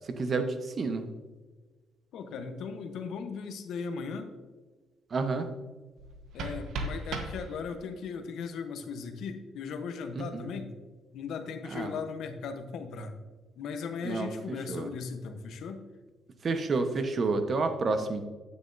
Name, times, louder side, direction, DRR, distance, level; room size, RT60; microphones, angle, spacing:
voice 1, 0.1-1.0 5.1-5.5 10.1-10.4 11.6-11.9 14.0-14.9 16.4-18.2, right 3 dB, 45° right, 7 dB, 1.1 m, -30 dB
voice 2, 2.1-4.3 6.3-10.7 11.1-13.1 13.6-15.8, left 5 dB, 75° left, 8 dB, 1.0 m, -37 dB
sound 1, 6.0-8.0, right 2 dB, 80° right, 1.2 m, -37 dB
9.7 x 9.4 x 2.7 m, 1.3 s
cardioid pair, 90°, 0 cm